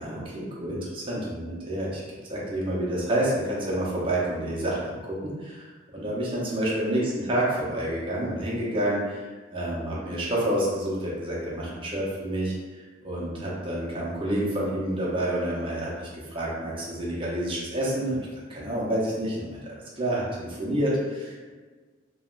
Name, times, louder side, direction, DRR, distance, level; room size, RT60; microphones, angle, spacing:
voice 1, 0.0-2.0 2.3-5.7 5.9-21.5, right 1 dB, 25° right, -5 dB, 0.6 m, -29 dB
3.2 x 2.2 x 2.4 m, 1.4 s
head